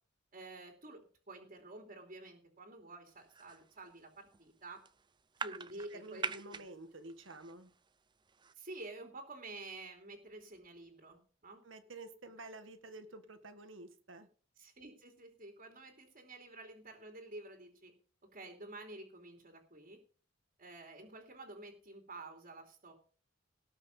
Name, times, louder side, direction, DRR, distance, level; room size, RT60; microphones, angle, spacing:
voice 1, 0.3-4.8 5.4-6.6 8.5-11.6 14.6-17.9 18.3-20.0 20.6-22.9, right 2 dB, 45° right, 2 dB, 2.9 m, -50 dB
sound 1, 3.2-3.9 4.2-4.5 4.8-6.7 7.0-7.9 8.2-8.5, right 5 dB, 25° right, 0.6 m, -44 dB
voice 2, 5.9-7.7 11.6-14.3, right 2 dB, 90° right, 8 dB, 1.8 m, -50 dB
18.5 x 6.4 x 5.5 m, 0.42 s
head